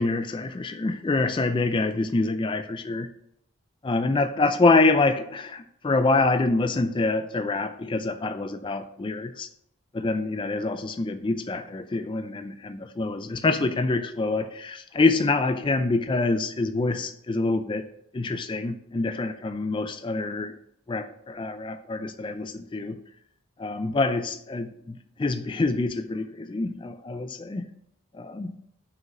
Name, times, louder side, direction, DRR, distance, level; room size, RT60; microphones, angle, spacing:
voice 1, 0.0-3.1 3.8-9.5 9.9-17.9 18.1-20.6 20.9-23.0 23.6-27.7 28.1-28.6, left 3 dB, 25° left, 0.3 m, -26 dB
6.2 x 4.9 x 5.9 m
head